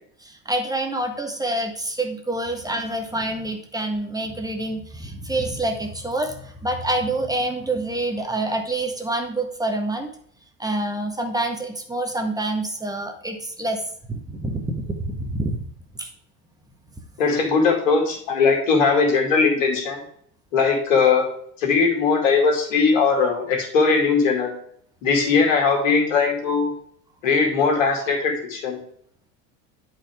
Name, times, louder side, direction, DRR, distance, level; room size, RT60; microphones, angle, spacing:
voice 1, 0.2-10.1 10.6-13.8 14.1-15.6 16.0-16.1, right 2 dB, 10° right, 3 dB, 1.4 m, -27 dB
voice 2, 17.2-20.0 20.5-21.3 21.6-24.5 25.0-26.7 27.2-28.8, left 4 dB, 85° left, 2 dB, 2.4 m, -19 dB
10.0 x 5.0 x 3.6 m, 0.63 s
supercardioid pair, 95°, 38 cm